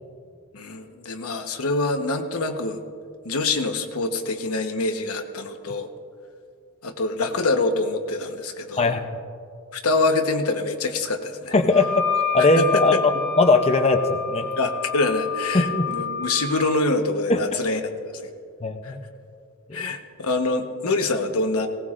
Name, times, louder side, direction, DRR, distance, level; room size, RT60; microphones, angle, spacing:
voice 1, 0.5-2.8 3.2-5.9 6.8-9.0 9.7-11.5 12.6-13.0 14.6-18.1 18.8-19.0 19.7-21.7, left 3 dB, 90° left, 5 dB, 1.1 m, -25 dB
voice 2, 11.5-12.1 12.3-12.9 13.4-14.5 15.5-15.9 17.3-17.4 18.6-19.0 19.7-19.9, left 3 dB, 30° left, 5 dB, 0.6 m, -19 dB
Wind instrument woodwind instrument, 11.7-16.7, left 6 dB, 50° right, 2.2 m, -28 dB
19.0 x 17.5 x 2.5 m, 2.3 s
head